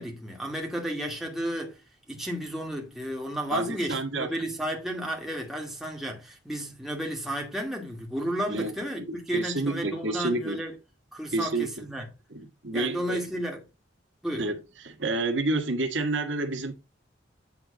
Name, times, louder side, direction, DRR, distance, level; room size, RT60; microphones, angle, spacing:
voice 1, 0.0-1.8 2.1-10.7 11.1-12.1 12.7-13.6 14.2-14.5, equal, ahead, 2.2 m, -33 dB
voice 2, 3.5-4.3 8.5-10.6 11.3-11.8 12.3-13.2 14.4-16.7, right 2 dB, 85° right, 1.5 m, -29 dB
9.1 x 3.9 x 5.1 m
head